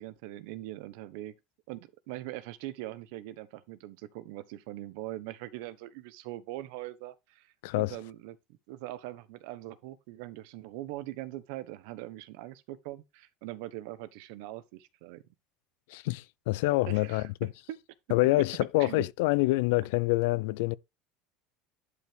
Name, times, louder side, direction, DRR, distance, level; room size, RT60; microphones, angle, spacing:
voice 1, 0.0-1.3 1.7-8.4 8.7-15.2 16.9-17.8 18.8-19.1, right 16 dB, 75° right, 1.0 m, -42 dB
voice 2, 7.6-8.0 15.9-17.3 18.1-20.7, left 20 dB, 85° left, 0.5 m, -26 dB
11.0 x 4.8 x 3.4 m
cardioid pair, 140°, 0 cm